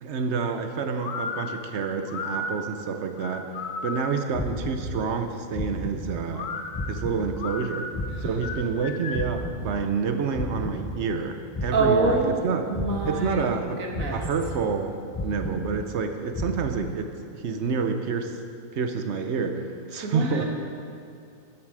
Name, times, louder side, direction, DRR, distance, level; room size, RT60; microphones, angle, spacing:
voice 1, 0.0-3.5 3.8-6.5 6.9-7.9 8.2-12.6 13.1-13.8 14.1-18.3 18.7-19.6 19.9-20.4, right 5 dB, 60° right, 6 dB, 1.0 m, -28 dB
sound 1, 1.0-4.3 6.3-9.4, left 3 dB, 75° left, 1.2 m, -35 dB
sound 2, 4.3-5.3 5.5-6.5 6.7-8.9 9.1-11.3 11.5-12.5 12.7-13.7 13.9-14.9 15.1-16.1 16.3-16.5, equal, 20° left, 0.5 m, -34 dB
voice 2, 11.7-12.4 12.7-13.4 13.8-14.2 20.0-20.4, right 3 dB, 90° right, 1 dB, 1.7 m, -25 dB
14.0 x 7.6 x 4.8 m, 2.4 s
omnidirectional pair, 1.4 m